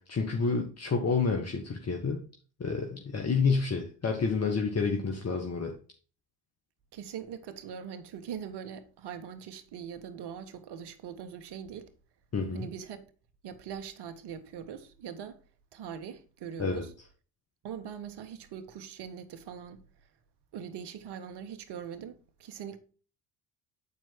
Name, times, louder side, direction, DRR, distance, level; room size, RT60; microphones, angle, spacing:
voice 1, 0.1-2.2 2.6-5.7 12.3-12.7 16.6-16.8, left 4 dB, 30° left, 1.5 m, -29 dB
voice 2, 6.9-11.9 12.5-13.1 13.4-15.4 15.7-16.9 17.6-19.8 20.5-22.8, right 8 dB, 55° right, 1.3 m, -42 dB
8.3 x 4.6 x 4.5 m
hypercardioid pair, 65°, 47 cm